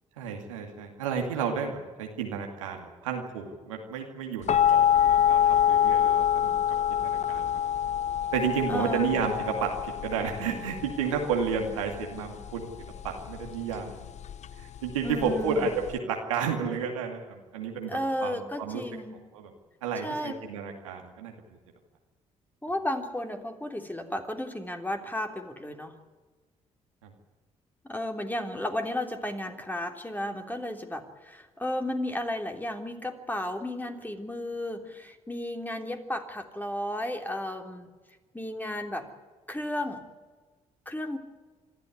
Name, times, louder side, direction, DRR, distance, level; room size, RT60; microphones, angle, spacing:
voice 1, 0.2-6.5 7.0-7.9 8.3-14.1 14.6-18.8 19.3-19.5 19.8-21.3 27.0-27.1, right 6 dB, 85° right, 2 dB, 2.3 m, -32 dB
sound 1, 4.5-16.0, left 9 dB, 45° left, 0.6 m, -26 dB
voice 2, 8.7-9.2 15.0-15.7 17.9-19.2 20.0-20.4 22.6-25.9 27.8-37.9 38.3-39.1 39.5-40.1 40.8-41.2, left 1 dB, 10° left, 4 dB, 3.4 m, -33 dB
26.0 x 13.0 x 9.8 m, 1.4 s
hypercardioid pair, 45°, 16 cm